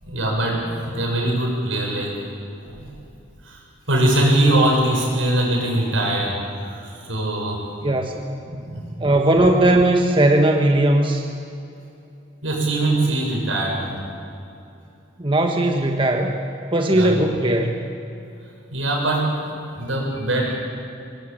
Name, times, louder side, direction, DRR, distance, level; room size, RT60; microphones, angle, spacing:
voice 1, 0.0-2.2 2.6-2.9 3.4-3.6 3.9-7.6 8.4-9.1 12.4-14.0 16.9-17.2 18.7-19.4 19.7-20.5, right 1 dB, 85° right, -1 dB, 7.7 m, -22 dB
voice 2, 7.8-8.3 9.0-11.2 15.2-16.4 16.7-17.8, right 1 dB, 25° right, 3 dB, 1.5 m, -18 dB
24.5 x 21.0 x 9.1 m, 2.7 s
head